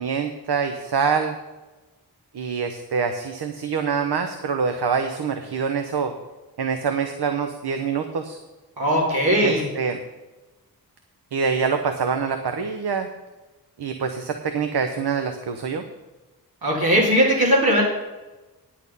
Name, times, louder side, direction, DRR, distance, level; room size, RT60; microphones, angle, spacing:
voice 1, 0.0-1.3 2.3-6.1 6.6-8.4 9.4-10.0 11.3-13.1 13.8-15.8, right 5 dB, 85° right, 7 dB, 0.9 m, -25 dB
voice 2, 8.8-9.6 16.6-17.8, equal, 65° right, -5 dB, 3.0 m, -19 dB
10.5 x 8.5 x 5.4 m, 1.2 s
cardioid pair, 55°, 39 cm